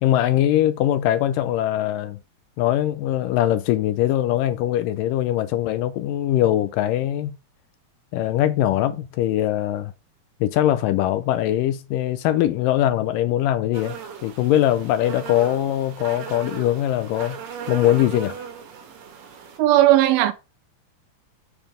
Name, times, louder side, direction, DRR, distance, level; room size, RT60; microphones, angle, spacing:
voice 1, 0.0-2.2 2.6-7.3 8.1-9.9 10.4-14.0 14.2-17.4 17.7-18.4, left 12 dB, 80° left, 2.0 m, -21 dB
sound 1, 13.7-19.6, right 7 dB, 70° right, 2.9 m, -37 dB
voice 2, 19.6-20.3, right 14 dB, 85° right, 2.5 m, -16 dB
7.3 x 4.8 x 5.0 m
omnidirectional pair, 4.2 m